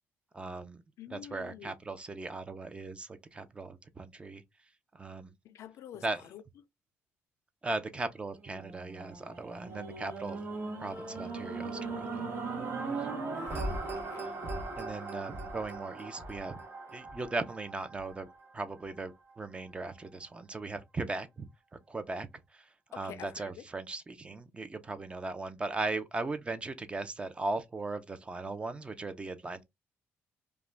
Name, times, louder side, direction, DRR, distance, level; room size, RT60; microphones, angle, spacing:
voice 1, 0.3-0.8 1.1-4.4 4.9-5.3 6.0-6.2 7.6-10.4 10.8-12.3 13.0-13.1 13.5-13.6 14.2-14.3 14.8-16.6 16.9-18.3 18.5-21.5 21.9-29.6, right 3 dB, 20° right, 0.5 m, -38 dB
voice 2, 1.0-1.7 5.4-6.0 6.3-6.4 13.3-14.3 22.9-23.6, left 10 dB, 75° left, 0.4 m, -48 dB
sound 1, 8.4-18.7 19.3-19.4, right 3 dB, 45° right, 0.9 m, -39 dB
2.4 x 2.1 x 3.2 m
cardioid pair, 105°, 5 cm